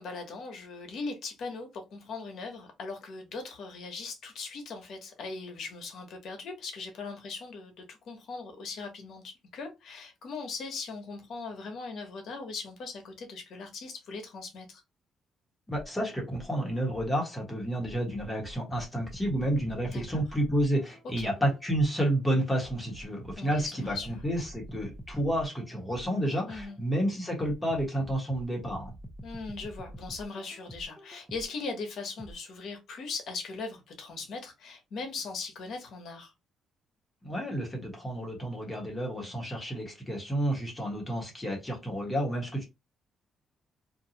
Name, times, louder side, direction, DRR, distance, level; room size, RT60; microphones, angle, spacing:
voice 1, 0.0-14.8 19.9-20.2 21.2-21.3 23.4-24.1 26.5-26.8 29.2-36.3 39.2-39.4, left 4 dB, 65° left, 1.0 m, -39 dB
voice 2, 15.7-28.9 37.2-42.6, right 1 dB, 15° left, 1.1 m, -30 dB
sound 1, 15.7-17.3 17.8-22.1 22.6-26.9 27.4-31.7 32.2-32.3, equal, 10° right, 0.5 m, -46 dB
2.6 x 2.3 x 2.8 m
cardioid pair, 125°, 0 cm